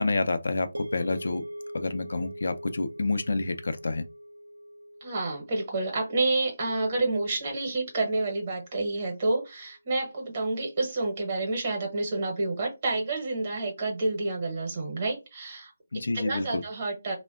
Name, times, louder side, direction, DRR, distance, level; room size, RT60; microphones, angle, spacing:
voice 1, 0.0-1.4 1.7-4.0 15.9-16.6, left 3 dB, 65° left, 0.4 m, -28 dB
sound 1, 0.7-9.0, equal, 85° right, 0.4 m, -44 dB
voice 2, 5.0-17.2, right 2 dB, 35° right, 0.9 m, -29 dB
3.3 x 2.1 x 2.4 m
figure-of-eight pair, 155°, 0 cm